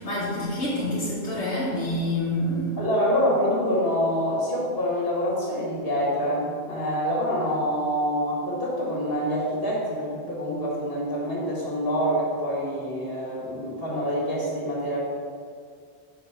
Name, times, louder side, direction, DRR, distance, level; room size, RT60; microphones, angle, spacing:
voice 1, 0.0-2.7, left 1 dB, 80° left, -8 dB, 1.6 m, -27 dB
voice 2, 2.8-15.0, equal, 60° left, -4 dB, 2.1 m, -26 dB
5.2 x 4.7 x 6.1 m, 2.1 s
omnidirectional pair, 1.1 m